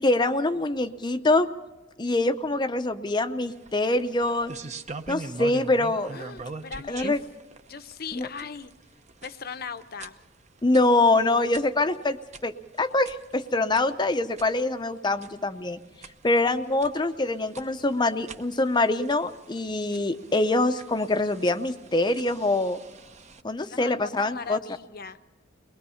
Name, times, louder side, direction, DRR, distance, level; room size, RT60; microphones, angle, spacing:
voice 1, 0.0-1.5 2.0-4.5 5.1-6.1 6.9-7.2 8.1-8.3 10.6-12.2 12.4-15.8 16.2-22.8 23.4-24.6, left 2 dB, 25° left, 10 dB, 0.6 m, -24 dB
sound 1, 3.5-23.4, right 3 dB, 40° right, 0.8 m, -44 dB
voice 2, 6.1-7.1 7.7-8.7 9.2-10.2 23.7-25.2, left 5 dB, 55° left, 11 dB, 0.7 m, -38 dB
22.5 x 20.5 x 5.6 m, 1.1 s
head